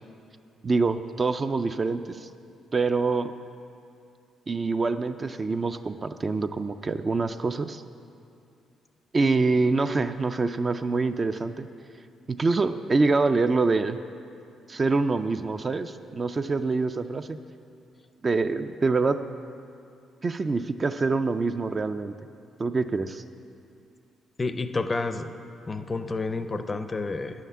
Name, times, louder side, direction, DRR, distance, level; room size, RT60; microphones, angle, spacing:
voice 1, 0.6-2.3 2.7-3.3 4.5-7.8 9.1-11.7 12.3-14.0 14.7-17.4 18.2-19.2 20.2-22.1 22.6-23.2, right 3 dB, 30° right, 9 dB, 0.3 m, -25 dB
voice 2, 24.4-25.3 25.7-27.3, left 3 dB, 25° left, 9 dB, 0.5 m, -29 dB
9.2 x 5.8 x 7.2 m, 2.5 s
cardioid pair, 90°, 0 cm